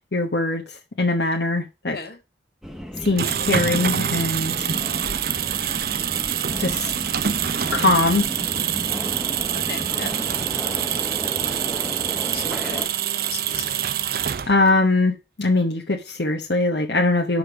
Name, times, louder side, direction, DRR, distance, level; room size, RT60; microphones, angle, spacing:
voice 1, 0.1-0.6 1.0-2.0 3.0-4.7 6.6-6.9 7.7-8.2 14.5-17.4, left 2 dB, 75° left, 1.1 m, -21 dB
Subway metro underground, 2.6-12.9, equal, ahead, 1.0 m, -34 dB
sound 1, 3.0-14.8, right 9 dB, 55° right, 0.5 m, -26 dB
voice 2, 9.5-10.2 12.3-12.9 13.2-13.8, left 4 dB, 55° left, 1.8 m, -36 dB
6.6 x 5.2 x 6.2 m
head